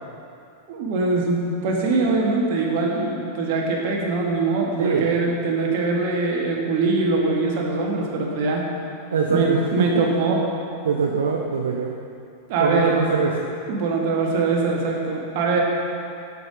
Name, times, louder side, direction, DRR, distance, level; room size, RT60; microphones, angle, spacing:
voice 1, 0.7-8.7 9.3-10.4 12.5-12.9 13.7-15.6, right 3 dB, 50° right, -1 dB, 1.4 m, -22 dB
voice 2, 4.8-5.1 9.1-10.0 10.8-11.9 12.6-13.5, right 5 dB, 65° right, 1 dB, 0.5 m, -23 dB
7.8 x 5.4 x 6.1 m, 2.6 s
figure-of-eight pair, 90°, 0 cm